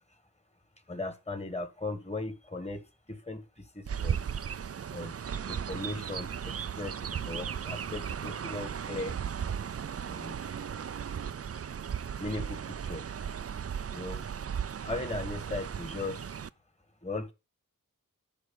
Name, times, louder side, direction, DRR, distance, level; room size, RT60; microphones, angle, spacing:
voice 1, 0.9-2.8 3.1-4.2 4.9-5.2 5.5-9.1 10.0-10.4 12.2-13.0 13.9-14.2 14.8-16.3 17.0-17.3, left 2 dB, 20° left, 10 dB, 1.6 m, -38 dB
Chirp tweet, 3.9-16.5, right 8 dB, 45° right, 0.4 m, -36 dB
11.0 x 4.8 x 6.9 m, 0.28 s
wide cardioid pair, 50°, 34 cm